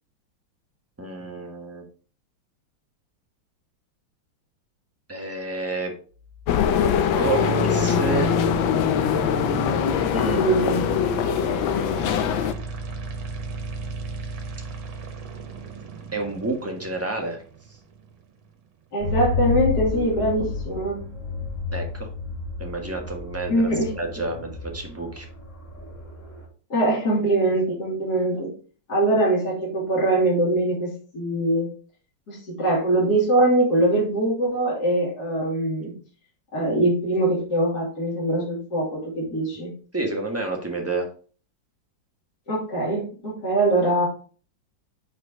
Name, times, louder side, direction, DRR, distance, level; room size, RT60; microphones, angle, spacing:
voice 1, 1.0-1.8 5.1-5.9 7.2-8.3 10.1-10.4 16.1-17.4 21.7-22.1 22.6-23.7 23.9-25.2 39.9-41.1, right 3 dB, 10° right, 1 dB, 1.2 m, -29 dB
sound 1, 6.2-18.2, right 4 dB, 80° right, 2.0 m, -34 dB
sound 2, 6.5-12.5, left 9 dB, 85° left, 1.4 m, -22 dB
voice 2, 10.2-10.9 18.9-21.0 23.5-23.9 26.7-28.5 28.9-31.7 32.3-35.9 36.5-39.7 42.5-44.1, right 1 dB, 50° left, -6 dB, 3.0 m, -22 dB
sound 3, 19.0-26.5, left 4 dB, 10° left, 2.3 m, -31 dB
5.6 x 4.7 x 5.0 m, 0.40 s
omnidirectional pair, 2.1 m